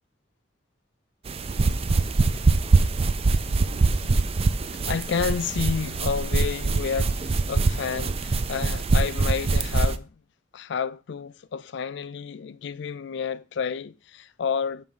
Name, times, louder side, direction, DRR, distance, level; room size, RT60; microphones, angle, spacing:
sound 1, 1.3-9.9, right 3 dB, 30° right, 0.4 m, -23 dB
voice 1, 4.0-10.2 10.5-14.8, left 6 dB, 65° left, 0.4 m, -30 dB
7.4 x 3.4 x 5.4 m
head